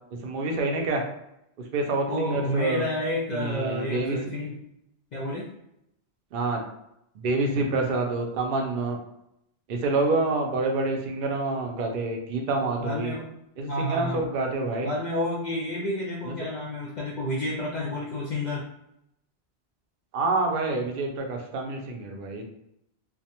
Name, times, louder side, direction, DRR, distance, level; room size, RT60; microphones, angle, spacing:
voice 1, 0.2-1.0 1.7-2.8 3.3-4.2 6.3-6.6 7.2-9.0 9.7-13.1 13.6-14.9 16.2-16.4 20.1-22.4, right 3 dB, 60° right, 2 dB, 0.6 m, -27 dB
voice 2, 2.1-4.6 5.1-5.5 12.8-13.3 13.7-14.3 14.8-18.7, left 1 dB, 55° left, -4 dB, 0.5 m, -30 dB
2.3 x 2.1 x 2.8 m, 0.80 s
omnidirectional pair, 1.1 m